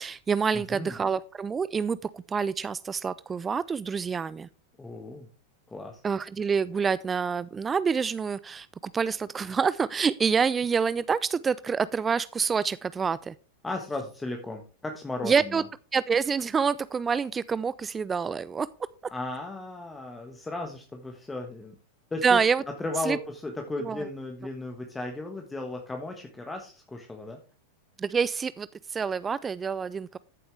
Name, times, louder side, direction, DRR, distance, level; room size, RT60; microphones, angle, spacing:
voice 1, 0.0-4.5 6.0-13.3 15.2-15.6 15.9-18.7 22.2-22.6 23.0-23.2 23.8-24.0 28.0-30.2, right 6 dB, 20° right, 0.4 m, -27 dB
voice 2, 0.5-0.9 4.8-5.3 5.7-6.0 13.6-15.6 19.1-21.7 22.1-22.4 22.8-27.4, left 2 dB, 10° left, 1.4 m, -35 dB
14.0 x 7.8 x 3.4 m
figure-of-eight pair, 90°, 0 cm